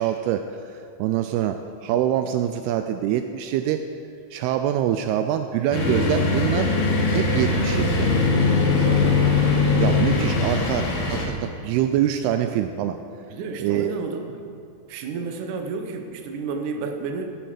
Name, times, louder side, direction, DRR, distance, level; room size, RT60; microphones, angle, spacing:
voice 1, 0.0-3.9 4.3-6.7 7.1-8.1 9.8-13.0 13.6-13.9, right 11 dB, 90° right, 8 dB, 2.2 m, -25 dB
sound 1, 5.7-11.3, left 3 dB, 55° left, 2.6 m, -21 dB
voice 2, 8.8-9.2 13.3-14.4 14.9-17.3, right 4 dB, 70° right, 4 dB, 1.9 m, -31 dB
18.0 x 9.3 x 5.0 m, 2.5 s
omnidirectional pair, 5.1 m